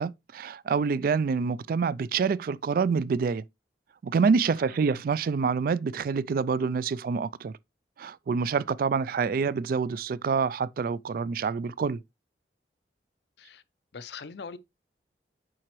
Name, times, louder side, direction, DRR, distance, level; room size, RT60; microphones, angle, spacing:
voice 1, 0.0-3.4 4.0-7.5 8.0-12.0, right 5 dB, 50° right, 0.3 m, -27 dB
voice 2, 4.4-4.8 9.2-9.5 13.4-13.6 13.9-14.6, left 5 dB, 70° left, 0.6 m, -43 dB
7.4 x 5.0 x 3.1 m
head